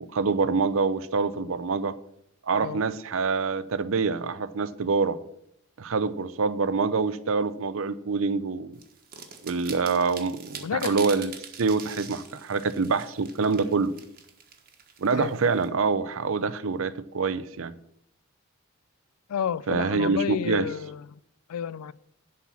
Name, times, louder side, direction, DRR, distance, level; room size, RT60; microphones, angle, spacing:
voice 1, 0.0-2.0 2.5-5.2 5.8-8.8 9.4-11.3 11.6-13.9 15.0-17.7 19.7-20.7, right 4 dB, 65° right, 0.6 m, -26 dB
sound 1, 8.8-15.6, right 7 dB, 40° right, 1.4 m, -43 dB
voice 2, 10.6-11.0 15.1-15.3 19.3-21.0 21.5-21.9, left 8 dB, 85° left, 0.4 m, -30 dB
11.0 x 4.3 x 7.0 m
head